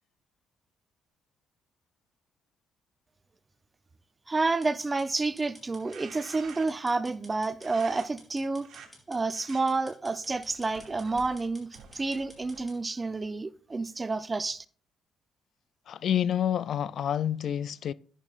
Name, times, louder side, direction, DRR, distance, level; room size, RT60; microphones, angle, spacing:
voice 1, 4.3-8.7 9.1-14.6, right 3 dB, 25° right, 0.6 m, -29 dB
sound 1, 4.6-12.8, left 1 dB, 15° left, 4.8 m, -53 dB
sound 2, 5.7-6.9 7.6-8.1 8.6-8.9 9.3-9.6 10.2-12.8, right 7 dB, 75° right, 2.1 m, -50 dB
voice 2, 15.9-17.9, left 10 dB, 65° left, 0.3 m, -28 dB
11.0 x 11.0 x 2.5 m
cardioid pair, 90°, 0 cm